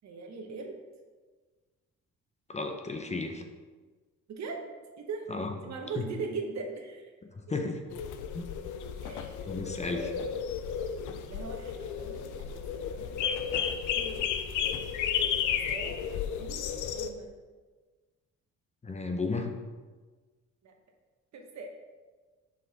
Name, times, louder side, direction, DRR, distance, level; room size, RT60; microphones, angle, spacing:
voice 1, 0.0-0.8 4.3-5.3 5.6-7.1 7.5-7.6 9.0-9.5 9.9-10.4 11.3-14.2 14.5-14.7 15.4-17.3 20.6-20.7 21.3-21.7, right 4 dB, 65° right, 3 dB, 1.1 m, -41 dB
voice 2, 2.5-3.4 5.3-5.6 6.0-6.1 7.5-7.8 8.3-8.5 9.5-10.1 18.8-19.5, left 3 dB, 20° left, 4 dB, 0.7 m, -33 dB
sound 1, 7.9-17.1, left 8 dB, 85° left, 0.5 m, -33 dB
6.2 x 4.6 x 4.0 m, 1.4 s
cardioid pair, 90°, 30 cm